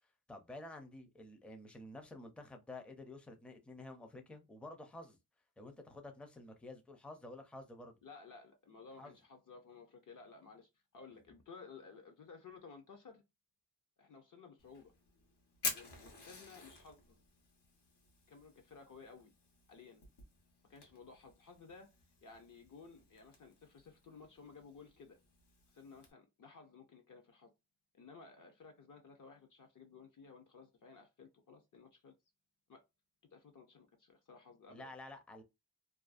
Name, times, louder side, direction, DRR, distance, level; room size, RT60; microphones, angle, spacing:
voice 1, 0.3-5.2 5.6-8.0 9.0-9.1 34.7-35.4, left 2 dB, 5° left, 0.4 m, -51 dB
voice 2, 8.0-13.2 14.0-14.9 15.7-17.2 18.3-19.3 19.7-20.0 20.7-21.9 22.2-25.2 25.7-27.5 27.9-32.2 32.7-32.8 33.3-34.9, left 5 dB, 50° left, 0.5 m, -56 dB
Fire, 14.6-26.1, left 4 dB, 80° left, 1.0 m, -49 dB
2.5 x 2.2 x 2.4 m
wide cardioid pair, 130°, 40 cm